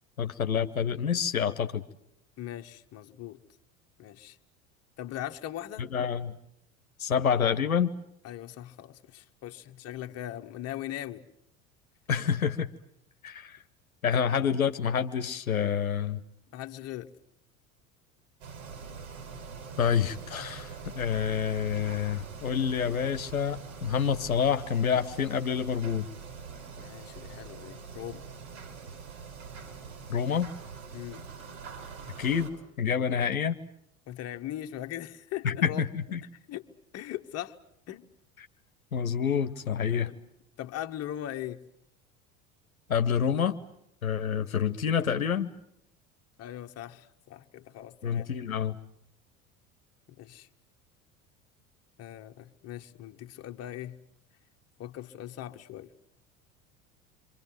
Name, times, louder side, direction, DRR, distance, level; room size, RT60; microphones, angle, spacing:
voice 1, 0.2-1.8 5.8-6.3 7.0-7.9 12.1-12.7 13.2-13.6 14.0-16.2 19.8-26.1 30.1-30.5 32.2-32.5 32.8-33.6 35.4-36.2 38.9-40.1 42.9-43.6 44.0-45.5 48.0-48.8, left 7 dB, 80° left, 1.1 m, -28 dB
voice 2, 2.4-3.4 4.0-4.4 5.0-5.9 8.2-11.2 16.5-17.1 26.8-28.3 30.9-31.2 34.1-35.8 36.5-36.7 36.9-37.6 37.9-38.0 39.9-40.2 40.6-41.6 46.4-48.3 50.1-50.5 52.0-54.0 54.8-55.9, left 12 dB, 35° left, 1.4 m, -40 dB
sound 1, 18.4-32.5, right 5 dB, 65° right, 6.1 m, -44 dB
28.0 x 25.0 x 7.7 m
figure-of-eight pair, 75°, 41 cm